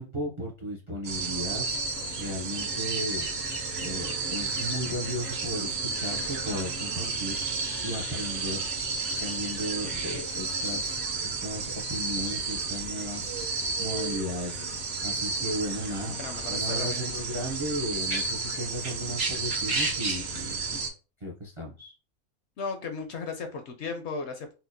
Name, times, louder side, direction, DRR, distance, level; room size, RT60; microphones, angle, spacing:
voice 1, 0.0-1.7 2.2-3.2 3.8-7.4 7.8-8.7 9.2-13.3 13.8-14.6 15.0-16.2 16.5-20.8 21.2-21.9, equal, 40° right, -2 dB, 0.4 m, -35 dB
sound 1, 1.0-20.9, right 3 dB, 60° right, 1.1 m, -32 dB
voice 2, 16.2-17.0 22.6-24.5, left 4 dB, 65° left, 6 dB, 0.7 m, -35 dB
4.2 x 2.1 x 2.6 m, 0.32 s
omnidirectional pair, 1.4 m